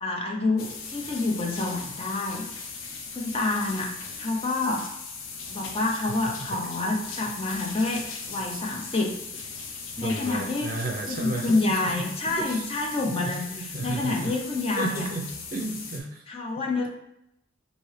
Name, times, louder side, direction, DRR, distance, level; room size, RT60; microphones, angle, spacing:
voice 1, 0.0-2.5 3.1-4.9 5.5-9.1 10.0-10.7 11.1-15.1 16.3-16.9, left 2 dB, 30° left, 0 dB, 0.6 m, -28 dB
sound 1, 0.6-16.0, left 5 dB, 75° left, 0.6 m, -38 dB
voice 2, 10.0-12.6 13.2-14.3 14.8-15.2 15.5-16.2, right 2 dB, 45° right, 1 dB, 0.6 m, -33 dB
4.2 x 2.7 x 3.2 m, 0.80 s
head